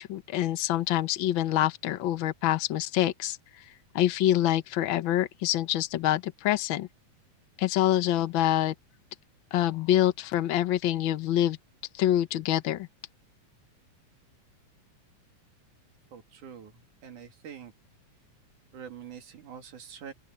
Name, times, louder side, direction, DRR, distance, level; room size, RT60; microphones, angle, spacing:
voice 1, 0.0-3.4 3.9-6.9 7.6-8.7 9.5-11.6 11.9-12.9, left 13 dB, 90° left, 1.0 m, -26 dB
voice 2, 16.1-17.7 18.7-20.1, right 8 dB, 90° right, 3.9 m, -45 dB
open air
omnidirectional pair, 3.4 m